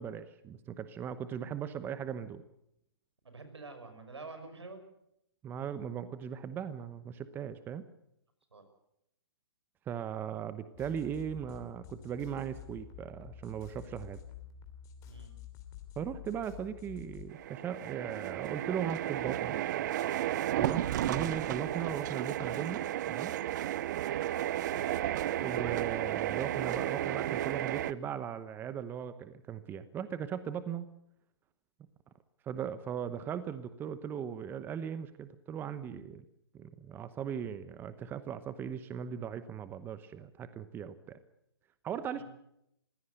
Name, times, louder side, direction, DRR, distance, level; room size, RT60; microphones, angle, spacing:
voice 1, 0.0-2.4 5.4-7.8 9.9-14.2 16.0-19.9 20.6-23.3 25.4-30.9 32.5-36.2 36.5-41.2 41.8-42.2, right 8 dB, 15° right, 13 dB, 0.9 m, -38 dB
voice 2, 3.2-4.8 8.5-8.6 15.0-15.3 24.7-25.0 42.1-42.2, right 3 dB, 85° right, 8 dB, 5.7 m, -47 dB
sound 1, 10.7-17.3, left 10 dB, 25° left, 3.0 m, -49 dB
sound 2, 17.3-27.9, right 12 dB, 45° right, 0.7 m, -33 dB
22.0 x 16.5 x 8.0 m, 0.78 s
hypercardioid pair, 140°, 14 cm